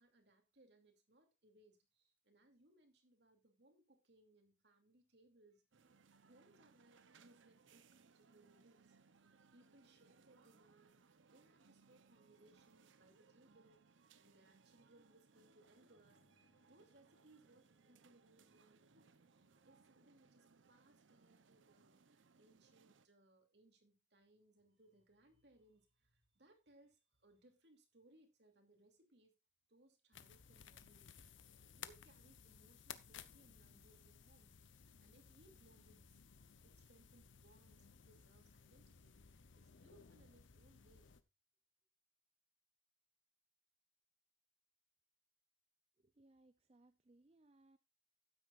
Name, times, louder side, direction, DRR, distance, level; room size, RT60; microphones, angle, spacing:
voice 1, 0.0-5.9 6.2-29.3 29.7-31.2 31.6-36.2 36.6-41.1, right 1 dB, 65° right, 2.7 m, -70 dB
sound 1, 5.7-23.1, right 4 dB, 85° right, 0.8 m, -69 dB
Bowed string instrument, 15.7-20.9, left 1 dB, 25° left, 1.3 m, -82 dB
sound 2, 30.1-41.2, left 8 dB, 90° left, 0.8 m, -59 dB
voice 2, 46.0-47.8, right 2 dB, 30° right, 0.5 m, -68 dB
12.5 x 9.4 x 2.5 m
head